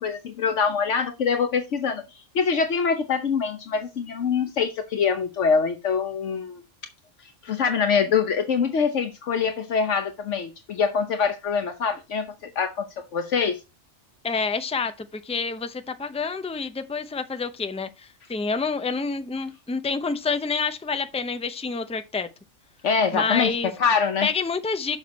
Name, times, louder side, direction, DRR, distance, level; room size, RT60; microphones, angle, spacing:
voice 1, 0.0-2.0 2.3-6.6 7.4-13.6 22.8-24.3, left 6 dB, 70° left, 1.2 m, -24 dB
voice 2, 14.2-22.3 23.1-23.7 24.2-25.0, left 4 dB, 10° left, 0.3 m, -28 dB
6.6 x 6.1 x 4.1 m
omnidirectional pair, 1.3 m